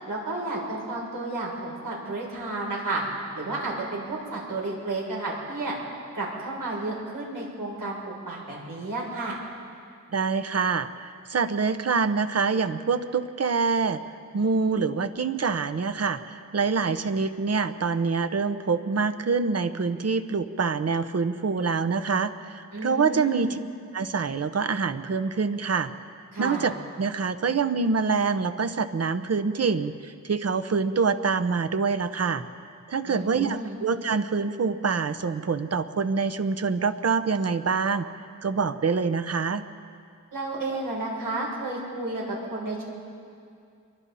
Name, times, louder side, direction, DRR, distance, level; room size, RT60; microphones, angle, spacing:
voice 1, 0.1-3.0 3.3-5.8 6.1-9.4 22.7-23.5 26.3-26.7 33.0-33.8 40.3-43.0, right 2 dB, 80° right, -3 dB, 7.2 m, -32 dB
voice 2, 10.1-14.0 14.3-23.6 23.9-25.9 26.4-32.4 32.9-38.0 38.4-39.6, right 5 dB, 50° right, 11 dB, 1.0 m, -26 dB
29.0 x 23.0 x 4.3 m, 2.4 s
wide cardioid pair, 120°, 33 cm